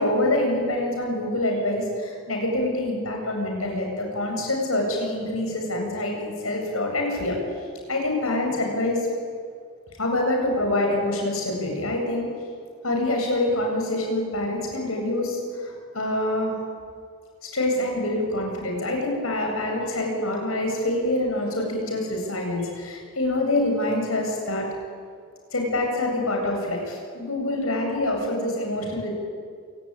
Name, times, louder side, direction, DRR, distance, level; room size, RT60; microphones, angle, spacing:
voice 1, 0.0-7.4 7.9-9.0 10.0-12.3 12.8-16.5 17.5-24.7 25.5-29.1, left 1 dB, 90° left, 1 dB, 7.8 m, -26 dB
27.5 x 18.5 x 9.8 m, 2.2 s
head